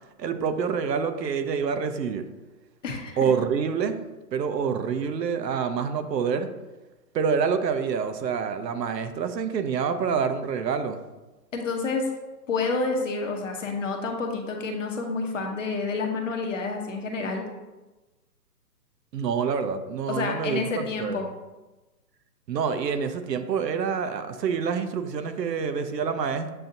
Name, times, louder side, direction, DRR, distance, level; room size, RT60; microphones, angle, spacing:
voice 1, 0.2-2.3 3.2-4.0 4.3-6.5 7.1-11.0 19.1-21.2 22.5-26.5, right 6 dB, 85° right, 9 dB, 0.7 m, -27 dB
voice 2, 2.8-3.2 11.5-12.1 12.5-17.5 20.1-21.3, left 4 dB, 50° left, 2 dB, 0.8 m, -29 dB
7.5 x 2.6 x 2.6 m, 1.1 s
hypercardioid pair, 170°, 48 cm